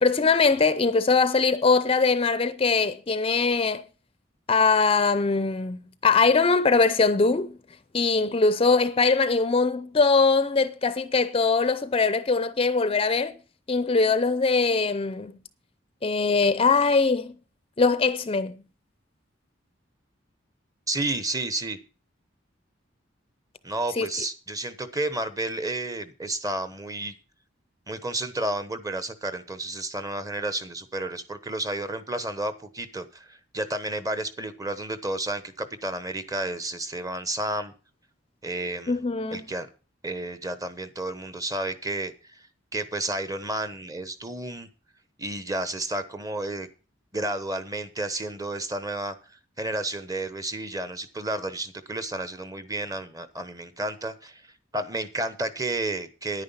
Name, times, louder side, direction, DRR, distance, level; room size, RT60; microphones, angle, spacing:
voice 1, 0.0-3.8 4.5-7.6 7.9-13.3 13.7-15.3 16.0-17.4 17.8-18.6 24.0-24.1 38.9-39.4, left 4 dB, 30° left, 0.6 m, -22 dB
voice 2, 20.9-21.8 23.6-27.1 27.9-37.7 38.4-38.9 39.3-39.7 40.0-42.4 42.7-44.7 45.2-46.7 47.1-56.4, right 2 dB, 20° right, 1.1 m, -31 dB
10.5 x 9.5 x 5.6 m
head